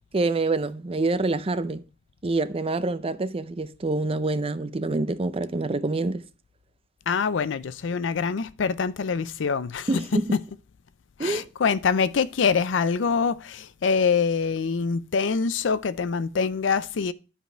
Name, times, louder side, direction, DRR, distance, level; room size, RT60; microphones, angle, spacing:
voice 1, 0.1-1.8 2.2-6.2 9.9-10.3 11.2-11.5, right 2 dB, 30° right, 0.5 m, -26 dB
voice 2, 7.1-10.0 11.2-17.1, left 5 dB, 70° left, 0.5 m, -25 dB
9.9 x 5.2 x 4.4 m
head